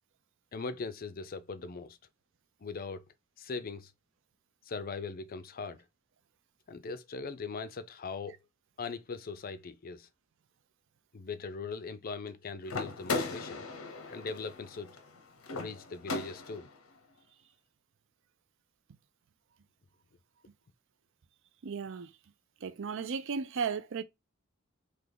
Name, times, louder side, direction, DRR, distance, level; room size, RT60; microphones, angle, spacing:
voice 1, 0.5-2.0 2.6-3.0 3.4-3.9 4.6-5.9 6.7-8.4 8.8-10.1 11.1-13.6 14.1-14.9 15.5-16.7, left 4 dB, 45° left, 0.5 m, -40 dB
sound 1, 12.7-16.8, left 3 dB, 90° left, 0.8 m, -38 dB
voice 2, 21.6-22.1 22.6-24.0, right 6 dB, 65° right, 0.4 m, -35 dB
3.5 x 2.8 x 3.8 m
head